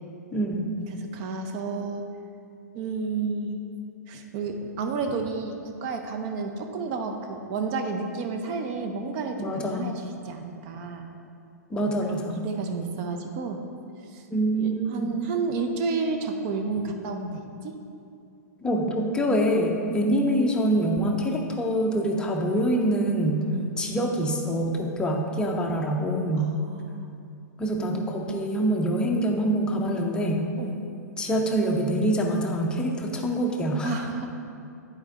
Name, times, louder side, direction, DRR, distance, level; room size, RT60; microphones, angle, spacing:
voice 1, 0.3-0.7 9.4-9.9 11.7-12.4 14.3-15.1 18.6-23.4 23.8-26.5 27.6-30.4 31.2-33.9, right 1 dB, 10° left, 1 dB, 0.7 m, -25 dB
voice 2, 0.9-2.0 2.7-3.6 4.1-11.1 11.8-13.6 14.1-14.2 14.6-17.8 19.9-20.1 23.5-23.7 26.4-27.1 30.6-30.8 33.8-34.3, right 4 dB, 35° right, 5 dB, 0.7 m, -31 dB
11.5 x 4.4 x 2.9 m, 2.6 s
figure-of-eight pair, 105°, 9 cm